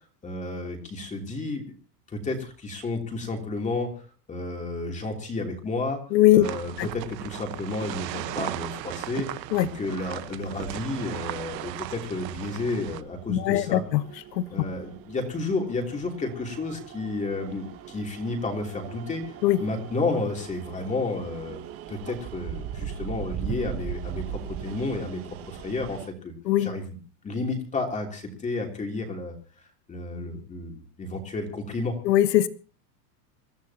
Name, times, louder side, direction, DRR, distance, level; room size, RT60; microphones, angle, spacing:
voice 1, 0.2-1.6 2.1-3.9 4.3-6.0 6.3-13.8 14.5-21.6 21.9-26.3 26.6-27.0 27.2-29.3 29.9-31.9, left 2 dB, 15° left, 2 dB, 3.1 m, -31 dB
voice 2, 6.1-6.5 6.8-6.9 9.5-9.7 13.3-14.0 14.4-14.5 19.4-19.6 26.5-26.7 32.0-32.5, left 14 dB, 85° left, 13 dB, 1.4 m, -20 dB
sound 1, 6.4-13.0, right 15 dB, 85° right, 1.3 m, -36 dB
sound 2, 9.7-26.1, right 9 dB, 30° right, 1.3 m, -40 dB
27.0 x 13.5 x 2.9 m, 0.36 s
supercardioid pair, 155°, 49 cm